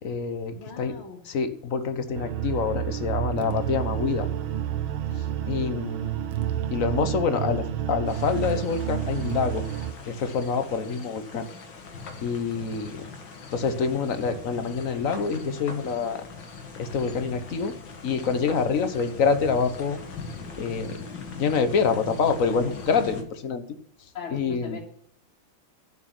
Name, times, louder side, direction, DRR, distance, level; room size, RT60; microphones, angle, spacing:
voice 1, 0.0-1.0 1.3-4.3 5.5-6.2 6.7-9.6 10.1-11.5 12.2-13.0 13.5-16.2 16.8-17.7 18.0-20.0 20.6-21.0 21.4-23.6 24.3-24.8, left 5 dB, 50° left, 10 dB, 1.3 m, -26 dB
voice 2, 0.5-1.2 5.9-6.3 12.8-13.2 24.1-24.8, left 6 dB, 85° left, -3 dB, 3.0 m, -41 dB
sound 1, 2.1-9.9, right 10 dB, 80° right, 1.8 m, -30 dB
sound 2, 8.1-23.2, left 4 dB, 65° left, 2.3 m, -41 dB
11.5 x 6.1 x 8.9 m, 0.66 s
omnidirectional pair, 2.2 m